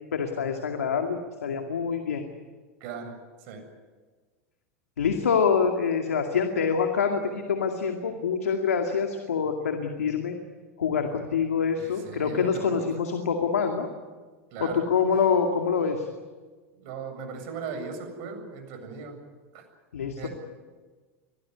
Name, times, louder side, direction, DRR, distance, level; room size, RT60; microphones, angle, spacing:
voice 1, 0.1-2.2 5.0-10.4 10.8-13.9 14.6-16.1 19.9-20.3, left 6 dB, 90° left, 4 dB, 2.3 m, -26 dB
voice 2, 2.8-3.1 3.4-3.6 8.5-8.6 11.8-12.9 14.5-14.8 15.1-15.2 16.7-19.2 19.5-19.6 20.2-20.3, right 5 dB, 55° right, 5 dB, 7.7 m, -38 dB
24.5 x 18.0 x 9.7 m, 1.4 s
hypercardioid pair, 100°, 8 cm